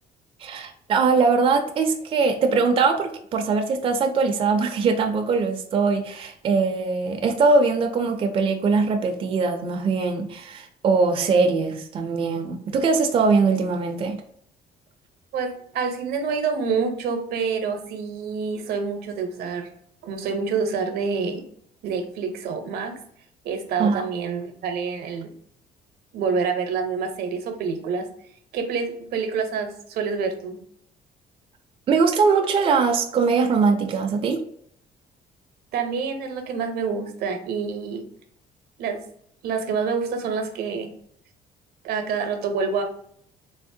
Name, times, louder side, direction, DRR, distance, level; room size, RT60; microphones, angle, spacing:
voice 1, 0.4-14.2 23.8-24.0 31.9-34.4, right 4 dB, 35° right, 4 dB, 0.4 m, -21 dB
voice 2, 15.3-19.7 20.0-21.4 21.8-23.0 23.4-25.3 26.1-28.1 28.5-30.6 35.7-38.0 38.8-39.0 39.4-40.9 41.8-42.8, right 5 dB, 75° right, 6 dB, 0.6 m, -27 dB
3.5 x 2.0 x 2.6 m, 0.65 s
cardioid pair, 130°, 16 cm